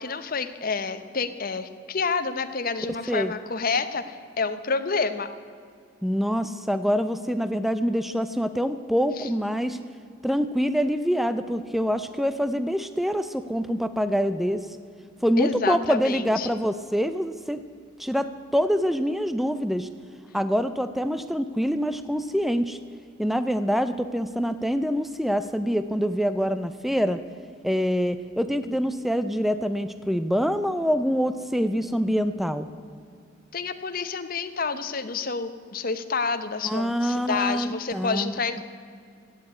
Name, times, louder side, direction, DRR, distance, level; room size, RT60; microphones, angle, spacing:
voice 1, 0.0-5.3 9.2-9.3 15.4-16.6 33.5-38.6, left 4 dB, 45° left, 10 dB, 0.9 m, -29 dB
voice 2, 6.0-9.8 10.2-14.7 15.2-17.6 18.0-19.9 20.3-22.8 23.2-27.2 27.6-32.7 36.6-38.3, equal, ahead, 11 dB, 0.4 m, -25 dB
15.5 x 8.8 x 9.6 m, 2.3 s
head